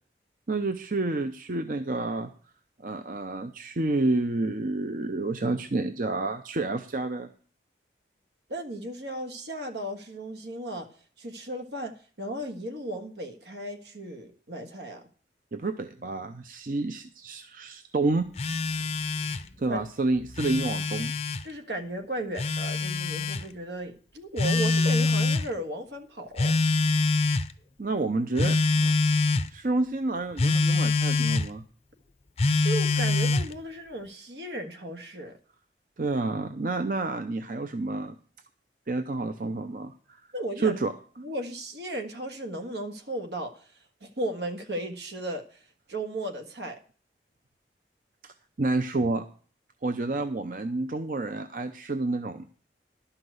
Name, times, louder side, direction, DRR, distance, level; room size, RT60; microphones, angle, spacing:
voice 1, 0.5-2.3 2.8-7.3 15.5-18.3 19.6-21.1 27.8-29.0 29.5-31.6 36.0-38.1 38.9-40.2 40.6-40.9 48.2-49.2 49.8-52.5, right 2 dB, 50° right, 8 dB, 0.6 m, -29 dB
voice 2, 8.5-10.9 11.2-15.0 19.7-19.8 21.4-26.6 32.6-35.4 40.3-40.8 41.2-43.7 44.0-45.6 45.9-46.8, right 1 dB, 80° right, 6 dB, 1.7 m, -35 dB
Telephone, 18.4-19.5 20.2-21.4 22.4-23.4 24.4-25.5 26.4-27.5 28.4-29.5 30.4-31.5 32.4-33.5, left 3 dB, 35° left, 0.5 m, -24 dB
12.0 x 5.8 x 7.9 m, 0.42 s
head